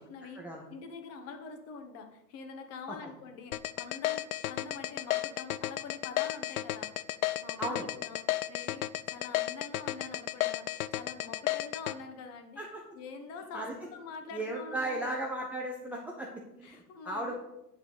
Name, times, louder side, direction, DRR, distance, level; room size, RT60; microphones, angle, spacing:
voice 1, 0.0-0.4 0.7-7.0 7.4-12.6 12.9-15.2 16.6-17.4, left 5 dB, 30° left, 6 dB, 1.2 m, -45 dB
sound 1, 3.5-11.9, left 15 dB, 55° left, 0.5 m, -32 dB
voice 2, 14.3-17.4, right 1 dB, 5° right, -2 dB, 0.6 m, -36 dB
9.0 x 6.1 x 4.9 m, 0.89 s
figure-of-eight pair, 105°, 50 cm